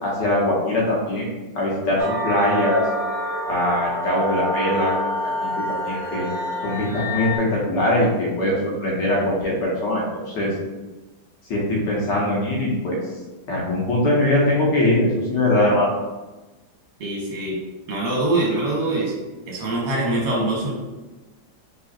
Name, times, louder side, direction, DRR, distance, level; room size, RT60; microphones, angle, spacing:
voice 1, 0.0-1.3 1.5-2.8 3.5-4.9 5.4-6.3 6.6-10.5 11.5-13.0 13.5-15.9, left 1 dB, 70° left, -4 dB, 1.6 m, -21 dB
sound 1, 2.0-7.4, equal, 20° left, 0.5 m, -27 dB
voice 2, 17.0-17.6 17.9-19.1 19.5-20.7, right 2 dB, 65° right, -3 dB, 1.8 m, -23 dB
5.4 x 3.7 x 2.5 m, 1.2 s
omnidirectional pair, 2.1 m